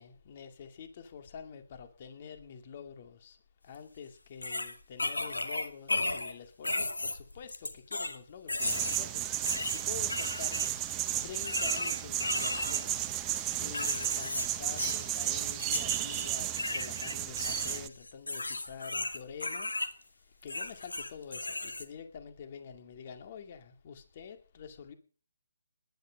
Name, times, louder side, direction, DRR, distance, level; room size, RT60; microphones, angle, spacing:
voice 1, 0.0-3.4 3.6-9.4 9.7-24.9, left 7 dB, 40° left, 8 dB, 2.2 m, -47 dB
sound 1, 3.7-3.8 4.4-6.3 6.6-8.2 8.5-9.0 9.4-10.7 11.4-12.8 13.3-14.5 14.8-15.1 15.6-16.3 16.6-19.9 20.4-21.8, left 2 dB, 90° left, 2.4 m, -35 dB
sound 2, 8.6-17.9, right 13 dB, 20° right, 0.9 m, -33 dB
19.5 x 11.0 x 5.2 m, 0.41 s
figure-of-eight pair, 150°, 0 cm